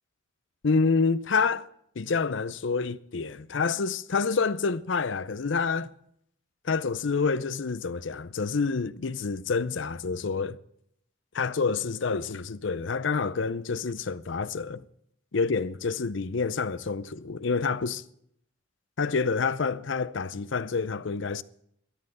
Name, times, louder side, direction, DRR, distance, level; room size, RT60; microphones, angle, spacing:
voice 1, 0.6-1.7 2.0-5.9 6.6-10.6 11.3-14.8 15.3-18.0 19.0-21.4, left 4 dB, 65° left, 0.6 m, -28 dB
13.0 x 10.0 x 7.9 m
head